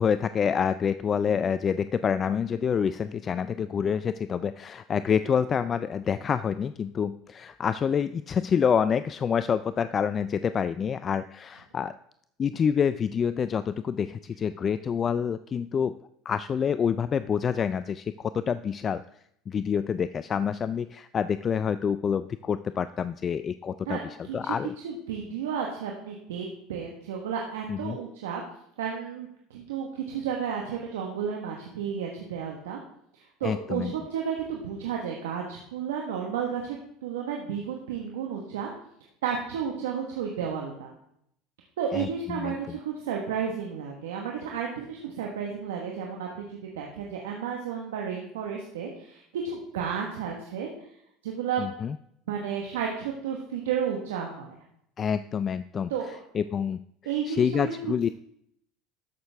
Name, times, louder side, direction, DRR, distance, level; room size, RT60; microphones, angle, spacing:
voice 1, 0.0-12.0 12.4-16.0 16.3-19.0 19.5-24.0 24.3-24.7 27.7-28.0 33.4-33.9 41.9-42.8 51.6-52.0 55.0-55.9 56.3-58.1, left 7 dB, 35° left, 13 dB, 0.3 m, -27 dB
voice 2, 24.2-24.6 24.8-28.4 28.8-32.8 33.1-38.7 39.2-40.9 41.8-50.7 51.2-51.7 52.3-54.5 55.9-56.2 57.0-57.8, right 7 dB, 90° right, 0 dB, 1.3 m, -32 dB
13.0 x 6.4 x 3.5 m, 0.73 s
supercardioid pair, 95°, 0 cm